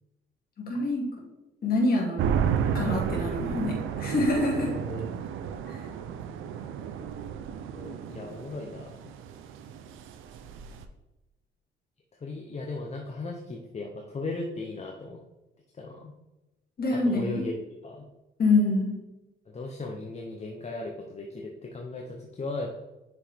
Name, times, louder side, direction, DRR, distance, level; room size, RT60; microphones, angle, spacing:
voice 1, 0.6-1.1 1.6-2.3 2.7-4.7 5.7-5.8 16.8-17.4 18.4-18.9, left 2 dB, 50° left, -2 dB, 2.4 m, -26 dB
sound 1, 2.2-10.9, right 7 dB, 85° right, 0.6 m, -32 dB
voice 2, 7.7-9.0 12.2-15.2 15.7-16.1 16.9-18.1 19.5-22.8, left 2 dB, 35° left, 1 dB, 0.8 m, -37 dB
6.4 x 5.1 x 3.5 m, 1.0 s
cardioid pair, 90°, 20 cm